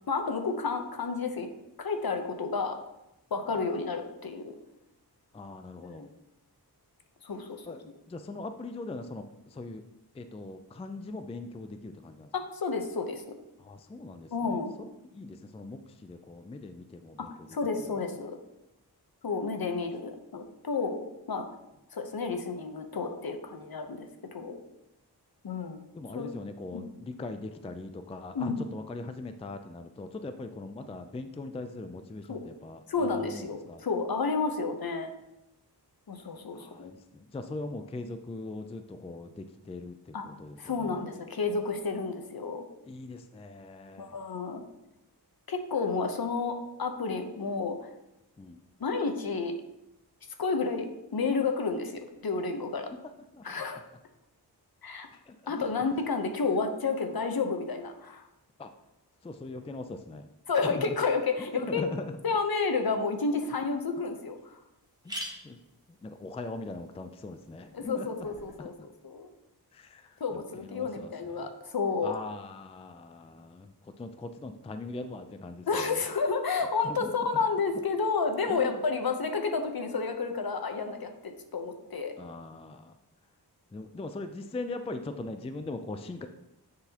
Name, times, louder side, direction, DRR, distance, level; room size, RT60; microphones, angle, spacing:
voice 1, 0.1-1.5 1.8-2.8 3.3-4.5 5.8-6.1 7.2-7.8 12.3-13.2 14.3-14.7 17.2-17.3 17.5-18.3 19.2-21.5 21.9-24.6 25.4-25.8 26.1-26.3 26.7-26.9 28.3-28.6 32.3-32.4 32.9-35.1 36.1-36.9 40.1-40.2 40.6-42.6 44.0-44.6 45.5-47.9 48.8-49.5 50.4-52.9 53.4-53.8 54.8-55.1 55.5-58.2 60.5-61.8 62.2-64.6 67.7-68.7 69.0-69.3 70.2-72.1 75.7-82.1, left 4 dB, 60° left, 5 dB, 0.8 m, -31 dB
voice 2, 5.3-6.1 7.7-9.8 10.1-12.3 13.6-17.7 23.9-24.1 25.9-33.8 36.5-41.0 42.8-44.2 48.4-48.6 53.0-53.6 55.2-55.7 58.6-58.7 59.2-60.3 60.6-61.0 61.5-62.2 65.0-65.1 65.4-65.6 65.9-68.1 68.6-68.7 69.7-71.5 72.0-76.0 76.8-77.5 78.5-78.8 82.2-83.0 83.7-86.3, left 2 dB, 15° left, 8 dB, 0.3 m, -41 dB
sound 1, 63.5-63.6 64.1-64.2 64.4-64.5 64.8-68.6, equal, 10° right, 1.1 m, -46 dB
9.5 x 4.0 x 2.9 m, 0.90 s
wide cardioid pair, 60°, 40 cm